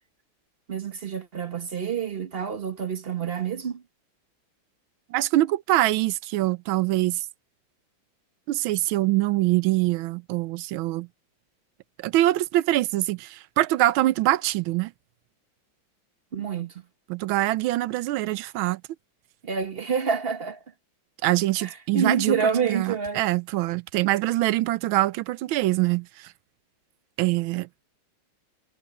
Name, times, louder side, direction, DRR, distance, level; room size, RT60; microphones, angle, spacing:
voice 1, 0.7-3.8 16.3-16.7 19.4-20.6 21.6-23.2, right 6 dB, 40° right, 0.9 m, -27 dB
voice 2, 5.1-7.2 8.5-11.1 12.0-14.9 17.1-18.8 21.2-22.4 22.7-26.3 27.2-27.8, right 16 dB, 85° right, 1.4 m, -24 dB
omnidirectional pair, 2.2 m